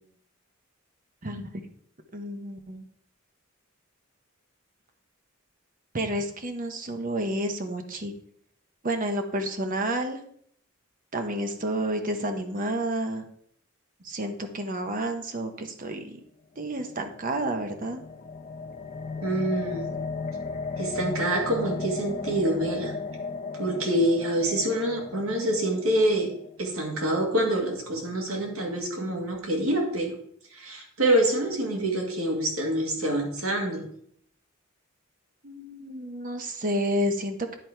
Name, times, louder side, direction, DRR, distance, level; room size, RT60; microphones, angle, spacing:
voice 1, 1.2-1.6 2.1-2.8 5.9-8.1 8.8-10.2 11.1-13.2 14.0-16.2 16.6-18.0 35.4-37.6, right 1 dB, 40° right, 6 dB, 0.9 m, -30 dB
sound 1, 16.7-26.9, left 4 dB, 40° left, 0.8 m, -36 dB
voice 2, 19.2-19.9 20.8-22.9 23.6-26.3 26.6-30.1 30.5-33.8, right 1 dB, 85° right, 0 dB, 2.0 m, -26 dB
10.0 x 4.1 x 4.5 m, 0.65 s
head